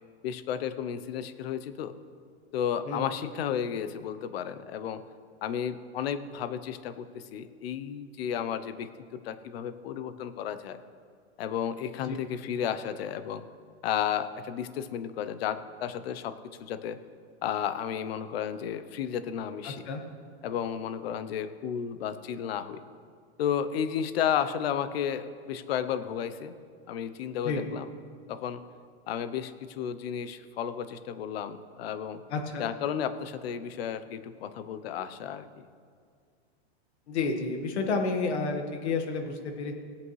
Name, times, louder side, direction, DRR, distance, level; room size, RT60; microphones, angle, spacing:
voice 1, 0.2-1.9 2.5-5.0 5.4-8.9 9.2-10.8 11.4-13.4 13.8-17.0 17.4-19.9 20.4-22.8 23.4-26.6 26.9-27.9 28.3-28.6 29.1-32.2 32.6-35.7, left 8 dB, 65° left, 12 dB, 0.7 m, -33 dB
voice 2, 19.6-20.0 27.4-27.6 32.3-32.7 37.1-39.7, left 4 dB, 80° left, 4 dB, 1.6 m, -30 dB
17.5 x 8.3 x 3.2 m, 2.2 s
supercardioid pair, 165°, 33 cm